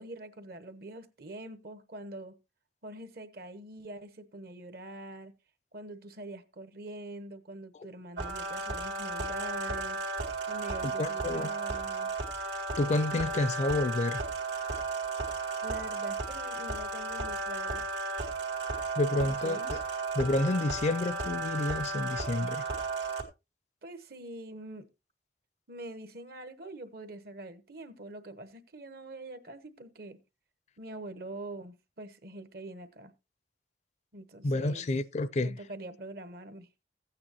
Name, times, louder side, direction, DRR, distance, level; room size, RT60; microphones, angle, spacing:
voice 1, 0.0-2.3 2.8-5.3 5.7-10.0 10.5-12.1 15.6-17.8 19.1-19.7 23.8-24.9 25.7-30.2 30.8-33.1 34.1-34.9 35.4-36.7, right 1 dB, 60° right, 1.1 m, -44 dB
sound 1, 8.2-23.2, right 3 dB, 75° right, 2.2 m, -34 dB
voice 2, 10.8-11.5 12.8-14.2 19.0-19.8 20.1-22.6 34.4-35.6, left 2 dB, 40° left, 0.4 m, -29 dB
14.5 x 8.8 x 2.9 m
head